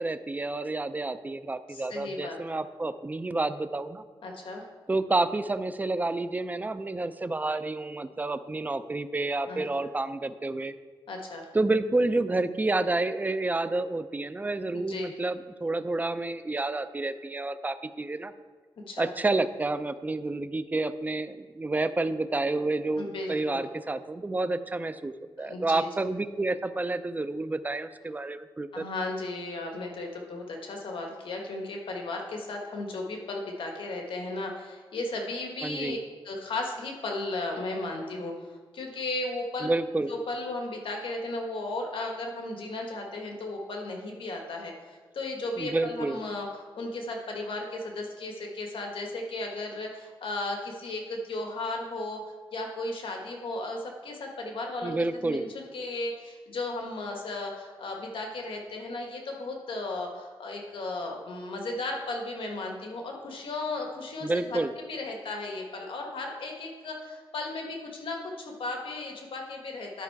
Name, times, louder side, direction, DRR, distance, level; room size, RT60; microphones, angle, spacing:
voice 1, 0.0-4.0 4.9-10.7 11.5-18.3 19.0-28.8 35.6-36.0 39.6-40.1 45.6-46.2 54.8-55.4 64.2-64.7, right 2 dB, 20° right, 11 dB, 0.4 m, -29 dB
voice 2, 1.7-2.4 4.2-4.6 9.5-9.6 11.1-11.5 14.7-15.1 18.9-19.1 22.9-23.6 25.4-25.9 28.7-36.0 36.2-39.7 40.1-52.2 52.5-55.0 55.2-64.6 64.9-68.2 68.5-70.0, left 2 dB, 75° left, 1 dB, 1.5 m, -35 dB
11.0 x 5.6 x 4.7 m, 1.4 s
wide cardioid pair, 100°, 9 cm